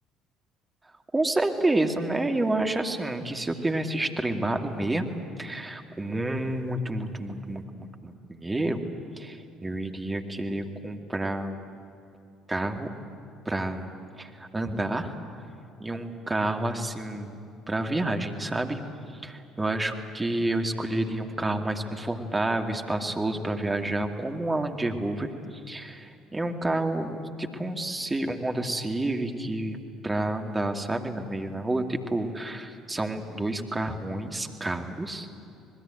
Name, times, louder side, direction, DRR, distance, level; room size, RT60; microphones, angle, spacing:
voice 1, 1.1-8.8 9.2-11.6 12.5-13.0 13.5-13.9 14.2-15.1 15.8-18.8 19.2-29.8 30.0-35.3, right 2 dB, 20° right, 4 dB, 2.4 m, -29 dB
26.5 x 20.0 x 9.2 m, 2.4 s
figure-of-eight pair, 55°, 0 cm